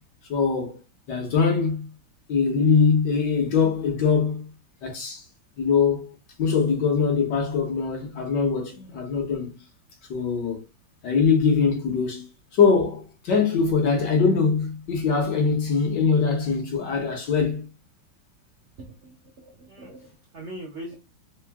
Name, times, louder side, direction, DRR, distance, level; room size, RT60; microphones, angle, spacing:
voice 1, 0.3-0.8 1.1-1.8 2.3-4.4 4.8-5.2 5.6-6.1 6.4-9.5 10.1-10.6 11.0-12.3 12.5-17.6, left 5 dB, 60° left, 1.5 m, -22 dB
voice 2, 18.8-21.0, right 1 dB, 55° right, 0.8 m, -41 dB
3.7 x 2.5 x 3.5 m
omnidirectional pair, 2.2 m